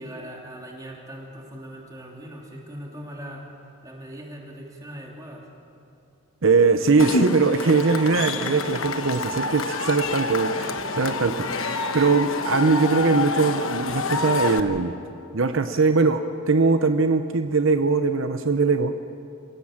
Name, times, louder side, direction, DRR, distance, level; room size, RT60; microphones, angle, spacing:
voice 1, 0.0-3.5 3.8-5.4, equal, 15° right, -1 dB, 3.1 m, -40 dB
voice 2, 6.4-14.9 15.3-18.9, right 4 dB, 65° right, 8 dB, 0.8 m, -21 dB
Cheering / Crowd, 7.0-14.6, left 3 dB, 65° left, 1.2 m, -27 dB
27.5 x 17.0 x 7.4 m, 2.6 s
head